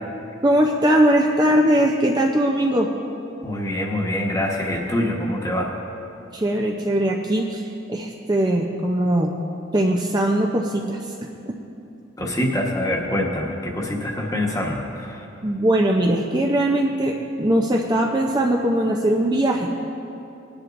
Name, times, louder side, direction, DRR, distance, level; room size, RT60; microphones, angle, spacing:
voice 1, 0.4-2.9 6.3-9.3 9.7-11.1 15.4-19.7, right 1 dB, 20° right, 0 dB, 0.5 m, -20 dB
voice 2, 3.4-5.7 12.2-15.2, left 1 dB, 15° left, -1 dB, 1.2 m, -25 dB
20.0 x 10.5 x 2.6 m, 2.7 s
head